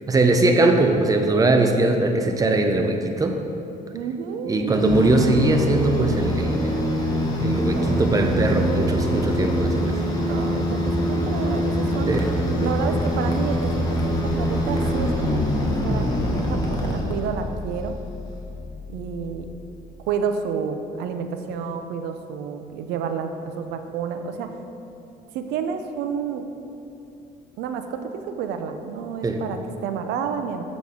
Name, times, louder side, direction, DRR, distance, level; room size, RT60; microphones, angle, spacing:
voice 1, 0.1-3.4 4.4-6.8 7.4-10.0 12.1-12.3 29.2-29.4, right 2 dB, 20° right, 5 dB, 0.6 m, -21 dB
voice 2, 3.9-4.8 7.7-8.7 10.3-12.2 12.6-17.9 18.9-19.5 20.1-24.5 25.3-26.5 27.6-30.6, right 6 dB, 85° right, 7 dB, 0.6 m, -30 dB
sound 1, 4.7-17.6, equal, 25° left, 1.3 m, -24 dB
sound 2, 12.6-20.2, left 4 dB, 90° left, 1.2 m, -36 dB
7.2 x 5.9 x 3.8 m, 2.7 s
cardioid pair, 110°, 17 cm